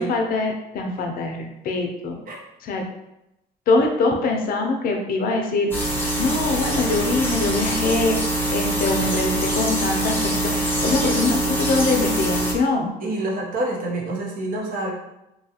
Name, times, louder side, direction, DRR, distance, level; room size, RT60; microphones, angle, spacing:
voice 1, 0.0-2.2 2.6-2.9 3.7-5.7 6.1-8.2 8.5-10.5 10.8-12.9, left 3 dB, 60° left, 3 dB, 0.5 m, -23 dB
sound 1, 5.7-12.5, right 1 dB, 10° left, 0.7 m, -23 dB
voice 2, 13.0-14.9, right 2 dB, 55° right, -2 dB, 0.8 m, -27 dB
2.8 x 2.3 x 2.8 m, 0.89 s
cardioid pair, 110°, 17 cm